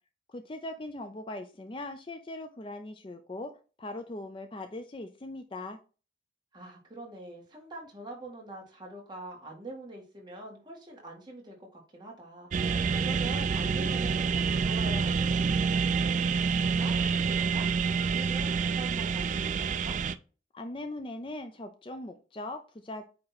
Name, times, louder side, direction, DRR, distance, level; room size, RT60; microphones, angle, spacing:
voice 1, 0.3-3.5 3.8-5.8 20.5-23.1, left 2 dB, 30° left, 7 dB, 0.4 m, -40 dB
voice 2, 6.5-20.0, right 1 dB, 25° right, -2 dB, 1.8 m, -45 dB
sound 1, 12.5-20.1, right 5 dB, 40° right, 0.3 m, -27 dB
8.6 x 2.9 x 4.1 m, 0.35 s
head